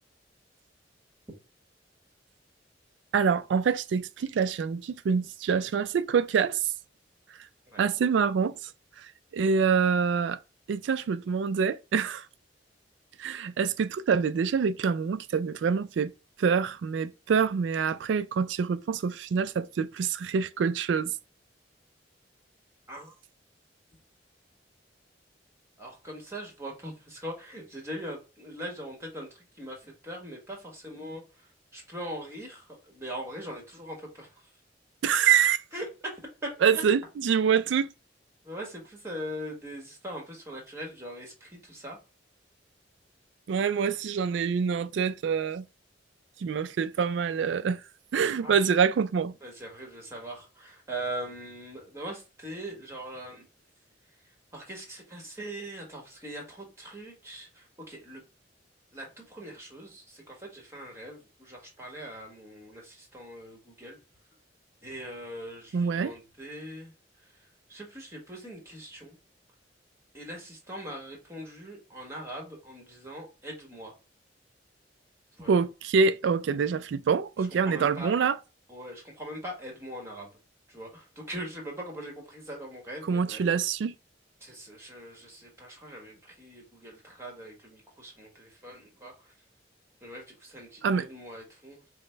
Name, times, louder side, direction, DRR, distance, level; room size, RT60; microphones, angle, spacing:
voice 1, 3.1-6.7 7.8-8.7 9.0-10.4 10.7-12.3 13.2-16.1 16.4-21.1 35.0-35.6 36.6-37.9 43.5-45.7 46.4-47.8 48.1-49.3 65.7-66.1 75.5-78.4 83.1-83.9 90.8-91.1, right 6 dB, 70° right, 0.3 m, -26 dB
voice 2, 25.8-34.5 35.7-36.8 38.4-42.0 48.4-48.6 49.4-53.5 54.5-58.2 58.9-64.0 64.8-66.9 67.3-69.2 70.1-74.0 75.4-75.6 77.6-78.1 78.7-80.4 80.7-83.4 84.4-89.3 90.0-91.8, right 1 dB, 15° right, 1.4 m, -41 dB
5.0 x 2.1 x 3.3 m
head